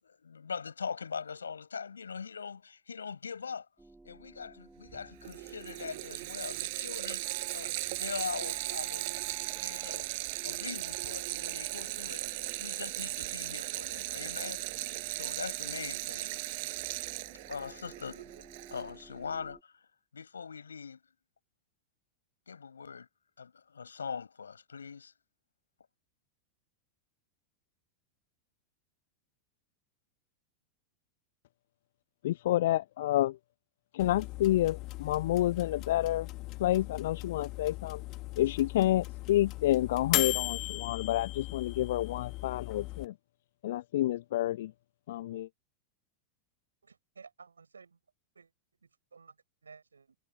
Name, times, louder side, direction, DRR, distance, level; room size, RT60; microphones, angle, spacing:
voice 1, 0.0-3.7 4.0-9.1 9.6-10.1 10.4-14.6 15.1-16.3 17.5-18.2 18.7-19.7 20.1-21.0 22.5-23.1 23.4-25.1, left 6 dB, 70° left, 6.7 m, -41 dB
sound 1, 3.8-19.6, right 2 dB, 5° right, 6.9 m, -56 dB
Water tap faucet, 4.9-5.0 5.2-19.0, right 23 dB, 50° right, 5.6 m, -37 dB
voice 2, 32.2-33.3 33.9-36.3 36.6-38.0 38.4-43.1 43.6-44.7 45.1-45.5, left 14 dB, 55° left, 1.0 m, -29 dB
sound 2, 34.0-43.1, left 20 dB, 40° left, 1.9 m, -37 dB
voice 3, 46.8-48.0 48.4-48.5 49.1-49.3 49.6-50.2, right 5 dB, 75° right, 6.0 m, -54 dB
figure-of-eight pair, 90°, 0 cm